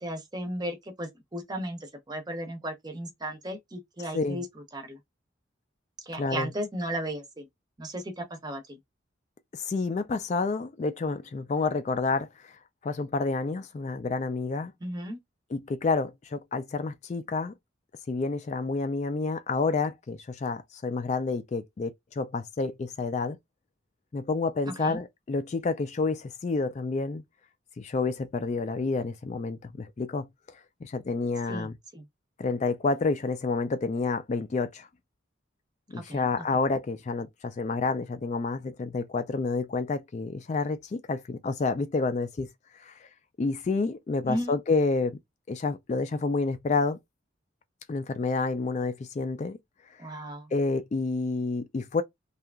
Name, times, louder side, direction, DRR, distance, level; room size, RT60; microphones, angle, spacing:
voice 1, 0.0-4.5 4.7-5.0 6.0-7.5 7.8-8.8 14.8-15.2 24.8-25.0 31.5-31.7 31.9-32.0 35.9-36.2 44.3-44.5 50.0-50.5, right 1 dB, 20° right, 0.6 m, -35 dB
voice 2, 4.0-4.4 6.1-6.5 9.5-14.7 15.5-17.5 18.1-23.4 24.1-27.2 27.8-30.3 30.8-31.7 32.4-34.9 35.9-43.1 43.4-45.2 45.5-47.0 47.9-49.6 50.5-52.0, left 3 dB, 35° left, 0.3 m, -29 dB
2.7 x 2.4 x 2.2 m
head